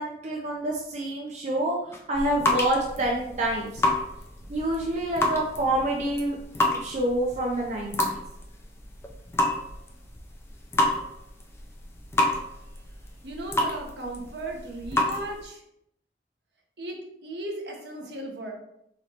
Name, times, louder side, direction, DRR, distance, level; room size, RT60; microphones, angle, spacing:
voice 1, 0.0-1.8 2.1-3.8 4.5-6.4 6.7-8.2, right 1 dB, 40° right, -1 dB, 0.5 m, -27 dB
sound 1, 1.9-15.4, left 1 dB, 15° left, 0.4 m, -29 dB
voice 2, 13.2-15.6 16.8-18.5, right 1 dB, 70° right, 1 dB, 0.8 m, -36 dB
4.0 x 3.0 x 2.8 m, 0.77 s
head